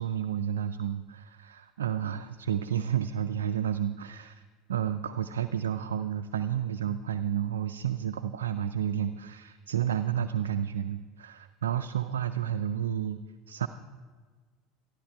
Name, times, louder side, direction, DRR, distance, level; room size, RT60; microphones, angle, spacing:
voice 1, 0.0-13.2 13.5-13.7, right 9 dB, 85° right, 8 dB, 0.4 m, -31 dB
12.5 x 12.5 x 4.5 m, 1.5 s
hypercardioid pair, 80°, 0 cm